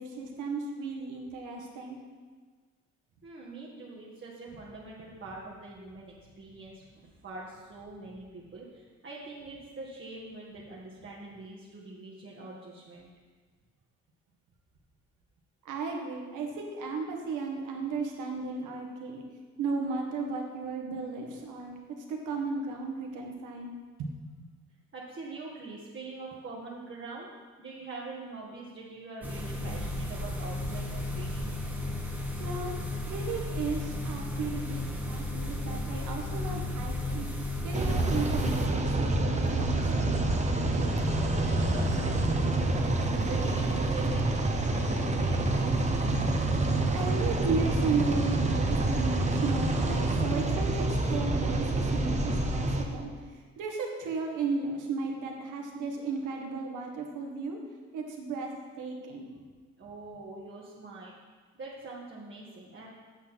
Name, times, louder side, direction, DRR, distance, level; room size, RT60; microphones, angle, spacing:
voice 1, 0.0-2.0 15.6-19.2 19.6-21.8 22.1-24.3 32.4-37.3 37.6-40.2 46.9-57.6 57.9-58.5 58.8-59.3, right 4 dB, 85° right, 1 dB, 1.6 m, -35 dB
voice 2, 3.2-13.1 24.9-27.3 27.6-31.6 40.9-42.9 43.2-45.7 59.7-61.1 61.5-62.9, right 3 dB, 40° right, -5 dB, 1.8 m, -44 dB
sound 1, 29.2-38.7, left 1 dB, 5° right, 1.5 m, -34 dB
sound 2, 37.7-52.8, right 2 dB, 25° right, 1.1 m, -27 dB
8.4 x 6.4 x 5.8 m, 1.5 s
cardioid pair, 90°, 30 cm